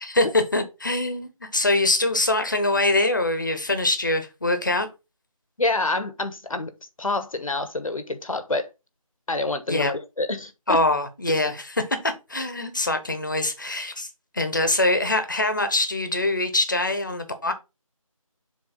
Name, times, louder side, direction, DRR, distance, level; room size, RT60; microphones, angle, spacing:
voice 1, 0.0-4.9 9.7-9.9 10.7-14.1 14.3-17.5, left 2 dB, 35° left, 1.0 m, -23 dB
voice 2, 5.6-6.7 7.0-8.7 9.3-10.8, left 2 dB, 70° left, 1.2 m, -27 dB
7.1 x 3.1 x 5.1 m
figure-of-eight pair, 175°, 18 cm